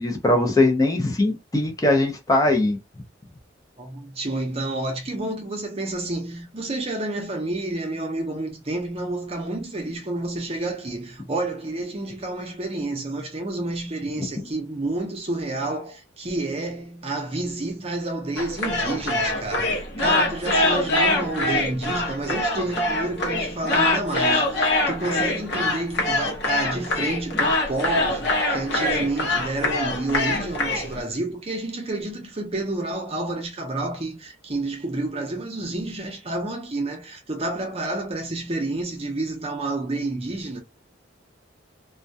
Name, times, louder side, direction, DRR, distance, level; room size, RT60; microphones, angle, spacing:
voice 1, 0.0-2.8, left 2 dB, 20° left, 0.5 m, -20 dB
voice 2, 3.8-40.6, right 2 dB, 30° right, 0.6 m, -29 dB
sound 1, 18.4-31.0, left 2 dB, 60° left, 0.8 m, -24 dB
2.2 x 2.2 x 2.6 m
head